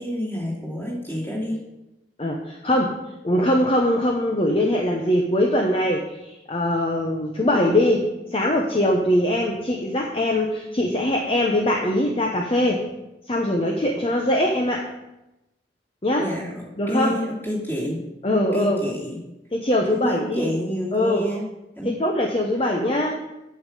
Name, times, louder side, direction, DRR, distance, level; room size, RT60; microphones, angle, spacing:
voice 1, 0.0-1.6 16.2-18.0 18.5-19.2 19.9-21.4 21.8-21.9, equal, 10° left, -4 dB, 2.6 m, -28 dB
voice 2, 2.2-3.0 3.2-12.8 13.3-14.9 16.0-16.3 16.8-17.1 18.2-18.8 19.5-20.5 20.9-21.3 21.8-23.3, left 1 dB, 30° left, 1 dB, 0.9 m, -22 dB
8.5 x 5.5 x 7.6 m, 0.95 s
head